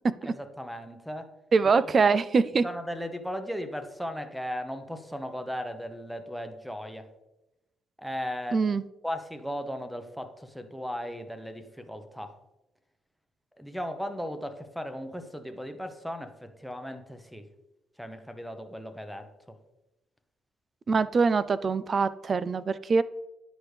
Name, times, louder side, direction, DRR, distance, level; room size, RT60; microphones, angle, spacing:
voice 1, 0.3-1.3 1.8-1.9 2.6-7.1 8.0-8.6 9.0-12.3 13.6-17.5 18.0-19.6, equal, ahead, 8 dB, 0.8 m, -37 dB
voice 2, 1.5-2.6 8.5-8.8 20.9-23.0, right 4 dB, 40° right, 17 dB, 0.3 m, -23 dB
9.7 x 5.1 x 3.2 m, 0.95 s
cardioid pair, 90°, 0 cm